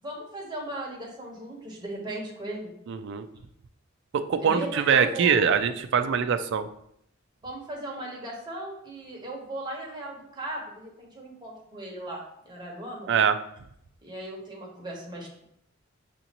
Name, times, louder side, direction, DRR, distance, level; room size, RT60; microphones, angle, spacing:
voice 1, 0.0-2.7 4.4-5.6 6.1-6.2 7.4-13.1 14.0-15.4, right 1 dB, 20° right, -2 dB, 1.0 m, -37 dB
voice 2, 2.9-3.3 4.1-6.7 13.1-13.4, right 7 dB, 60° right, 10 dB, 0.3 m, -23 dB
6.9 x 2.6 x 2.9 m, 0.73 s
head